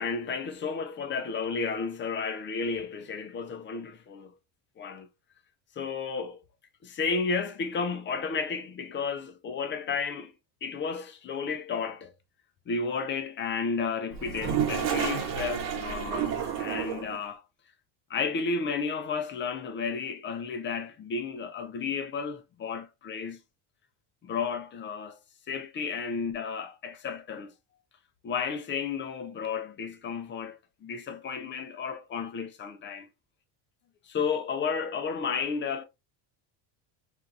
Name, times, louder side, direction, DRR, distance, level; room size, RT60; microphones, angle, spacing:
voice 1, 0.0-4.3 4.8-5.1 5.8-6.4 6.8-10.3 10.6-12.1 12.7-17.4 18.1-23.4 24.2-25.2 25.5-27.5 28.2-33.1 34.0-35.8, left 5 dB, 25° left, 0.4 m, -32 dB
Toilet flush, 14.1-17.2, right 8 dB, 60° right, 1.2 m, -30 dB
2.6 x 2.3 x 3.8 m
cardioid pair, 120°, 49 cm